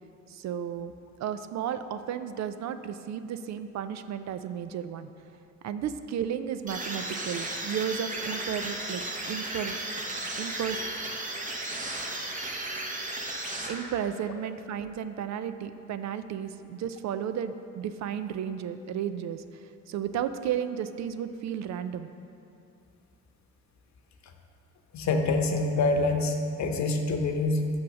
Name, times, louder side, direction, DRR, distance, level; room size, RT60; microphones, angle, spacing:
voice 1, 0.3-0.9 1.2-5.1 5.6-9.0 9.3-9.9 10.4-10.8 13.7-22.1, right 9 dB, 65° right, 11 dB, 0.5 m, -33 dB
sound 1, 6.7-14.2, right 2 dB, 25° right, 1.0 m, -35 dB
voice 2, 24.9-27.7, left 3 dB, 65° left, 4 dB, 0.9 m, -26 dB
6.4 x 5.9 x 6.1 m, 2.5 s
cardioid pair, 90°, 30 cm